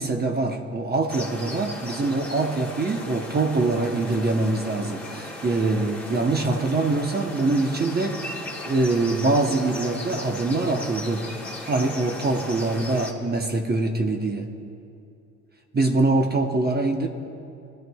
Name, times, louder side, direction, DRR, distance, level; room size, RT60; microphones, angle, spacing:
voice 1, 0.0-8.3 8.7-11.2 11.7-14.5 15.7-17.1, right 2 dB, 35° right, 4 dB, 0.9 m, -24 dB
sound 1, 1.1-13.1, left 1 dB, 5° left, 1.9 m, -37 dB
20.0 x 12.5 x 2.3 m, 2.6 s
cardioid pair, 90°, 30 cm